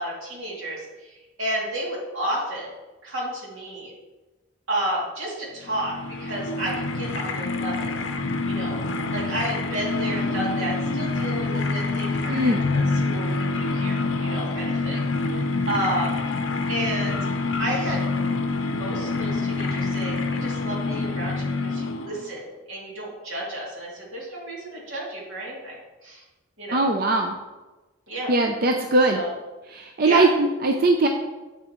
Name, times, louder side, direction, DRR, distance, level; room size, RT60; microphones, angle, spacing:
voice 1, 0.0-2.7 3.0-3.9 4.7-7.9 8.4-8.8 9.1-16.2 16.7-17.2 17.6-18.0 18.6-26.2 26.6-26.8 28.1-28.3 29.1-29.3 30.0-30.3, right 1 dB, 80° right, -4 dB, 2.6 m, -32 dB
sound 1, 5.6-22.3, left 3 dB, 65° left, 0.6 m, -26 dB
voice 2, 12.3-12.6 26.7-27.4 28.3-29.2 29.7-31.1, right 2 dB, 45° right, 3 dB, 0.5 m, -20 dB
8.2 x 7.4 x 3.1 m, 1.1 s
head